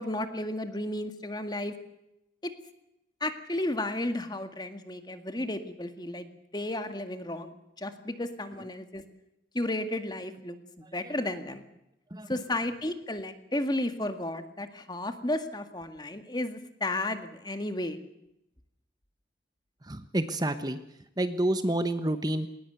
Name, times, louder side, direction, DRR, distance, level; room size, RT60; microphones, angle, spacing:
voice 1, 0.0-1.7 2.4-2.5 3.2-9.0 9.5-11.7 12.3-18.0, left 1 dB, 25° left, 8 dB, 1.9 m, -33 dB
voice 2, 19.8-20.8 21.2-22.5, right 1 dB, 20° right, 10 dB, 1.1 m, -29 dB
20.0 x 19.5 x 8.1 m, 0.85 s
head